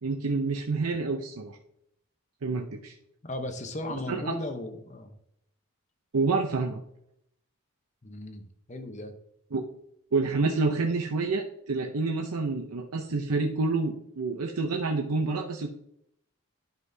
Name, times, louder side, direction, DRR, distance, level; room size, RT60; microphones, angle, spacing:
voice 1, 0.0-1.6 2.4-2.9 4.1-4.2 6.1-6.8 9.5-9.6 10.1-15.7, right 3 dB, 85° right, 2 dB, 0.7 m, -28 dB
voice 2, 3.2-5.2 8.0-9.2, left 1 dB, 30° left, 6 dB, 0.8 m, -36 dB
11.0 x 5.8 x 2.7 m, 0.76 s
head